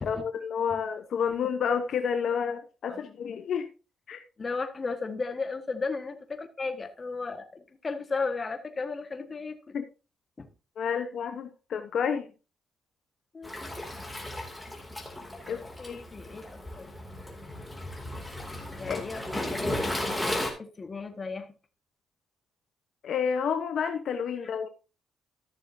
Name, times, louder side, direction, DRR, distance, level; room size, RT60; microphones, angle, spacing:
voice 1, 0.0-3.7 4.1-4.2 9.7-9.8 10.8-12.3 15.5-16.0 18.9-19.0 23.0-24.7, left 7 dB, 65° left, 7 dB, 0.9 m, -30 dB
voice 2, 4.4-9.8 10.4-10.5 13.3-13.5 15.5-16.9 17.3-17.4 18.8-19.8 20.2-21.5, left 4 dB, 30° left, 7 dB, 1.4 m, -35 dB
Waves surf, 13.4-20.5, left 1 dB, 5° left, 2.4 m, -35 dB
13.5 x 6.8 x 2.6 m, 0.32 s
cardioid pair, 90°, 0 cm